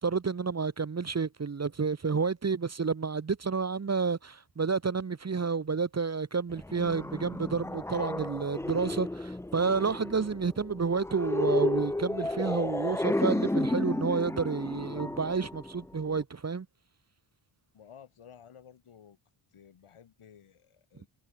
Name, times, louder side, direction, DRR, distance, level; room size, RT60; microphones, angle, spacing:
voice 1, 0.0-16.7, right 5 dB, 30° right, 1.2 m, -30 dB
sound 1, 6.5-16.2, left 1 dB, 5° left, 0.4 m, -32 dB
voice 2, 17.7-19.2 19.5-21.1, left 8 dB, 80° left, 6.4 m, -54 dB
wide cardioid pair, 105°, 50 cm